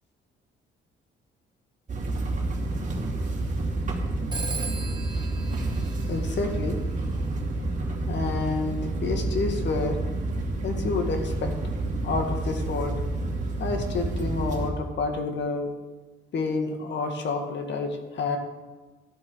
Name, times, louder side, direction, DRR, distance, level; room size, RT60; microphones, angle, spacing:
sound 1, 1.9-14.7, right 2 dB, 40° right, 2.4 m, -29 dB
Telephone, 4.3-6.8, right 4 dB, 20° right, 1.7 m, -38 dB
voice 1, 5.5-6.8 8.1-10.0 10.6-11.5 12.0-12.9 13.6-15.7 16.3-18.4, left 4 dB, 65° left, 4 dB, 2.0 m, -29 dB
13.0 x 7.9 x 6.4 m, 1.2 s
cardioid pair, 90°, 20 cm